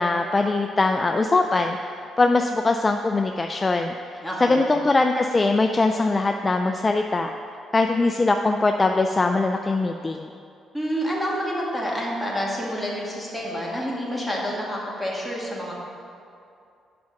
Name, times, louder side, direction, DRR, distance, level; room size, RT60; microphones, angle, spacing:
voice 1, 0.0-1.8 2.2-3.9 4.4-7.3 7.7-10.3, left 3 dB, 25° left, 5 dB, 0.4 m, -21 dB
voice 2, 4.2-4.7 10.7-15.7, equal, ahead, -5 dB, 2.0 m, -28 dB
7.6 x 5.7 x 5.8 m, 2.5 s
cardioid pair, 90°, 0 cm